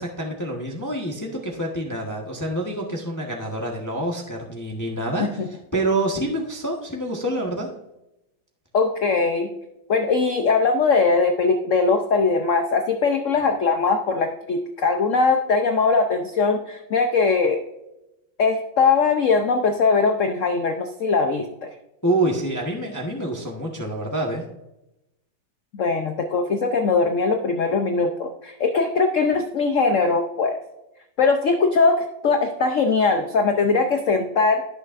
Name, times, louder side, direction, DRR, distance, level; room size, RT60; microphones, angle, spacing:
voice 1, 0.0-5.3 5.7-7.7 22.0-24.4, right 1 dB, 10° left, -1 dB, 1.0 m, -26 dB
voice 2, 8.7-9.5 9.9-17.6 18.4-21.7 25.7-30.6 31.2-34.6, left 4 dB, 60° left, 5 dB, 0.8 m, -21 dB
17.0 x 6.4 x 2.6 m, 0.90 s
omnidirectional pair, 2.2 m